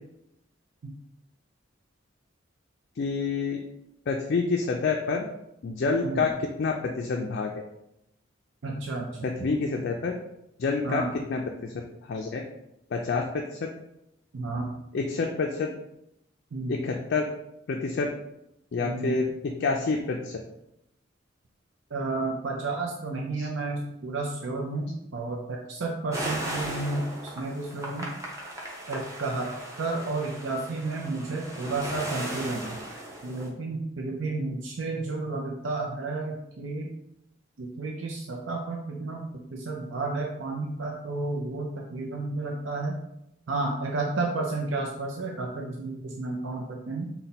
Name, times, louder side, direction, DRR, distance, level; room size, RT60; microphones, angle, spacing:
voice 1, 3.0-3.6 4.1-5.2 5.6-6.3 6.6-7.5 9.2-10.1 10.6-11.0 11.3-11.7 12.1-12.4 12.9-13.4 14.9-15.7 16.7-17.2 17.7-18.1 18.7-20.4 23.4-23.5, left 4 dB, 55° left, 1 dB, 0.4 m, -27 dB
voice 2, 8.6-9.3 10.8-11.2 14.3-14.7 16.5-16.7 18.8-19.2 21.9-28.1 28.9-29.5 29.8-32.8 33.2-36.9 37.6-43.0 43.5-47.1, right 3 dB, 70° right, -1 dB, 0.5 m, -32 dB
sound 1, 26.1-33.5, right 1 dB, 15° right, 0.7 m, -37 dB
4.1 x 2.2 x 4.0 m, 0.81 s
head